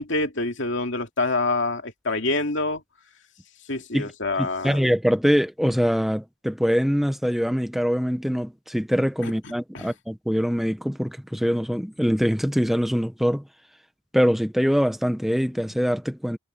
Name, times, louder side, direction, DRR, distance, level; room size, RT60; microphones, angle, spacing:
voice 1, 0.0-2.8 3.7-4.8 9.2-9.3 9.7-9.9, left 2 dB, 60° left, 2.6 m, -26 dB
voice 2, 4.4-13.4 14.1-16.4, equal, ahead, 1.1 m, -23 dB
head